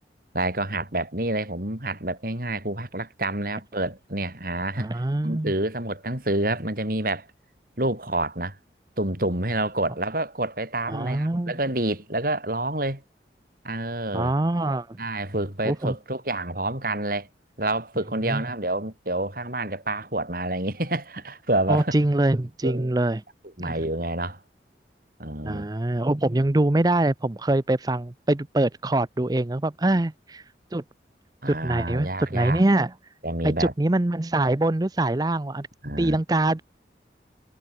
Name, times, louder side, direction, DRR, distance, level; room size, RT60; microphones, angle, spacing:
voice 1, 0.3-4.9 5.2-7.3 7.8-8.6 9.0-13.0 13.6-14.3 15.0-17.3 17.6-21.9 22.6-22.9 23.6-24.4 25.2-25.7 31.4-32.6 33.2-33.7 35.8-36.2, right 2 dB, 50° right, 5.4 m, -28 dB
voice 2, 4.8-5.5 10.9-11.5 14.1-15.0 15.6-15.9 18.3-18.4 21.7-23.2 23.6-23.8 25.4-30.4 30.7-30.8 31.5-32.9 33.4-35.7 36.0-36.6, right 1 dB, 20° right, 0.6 m, -24 dB
head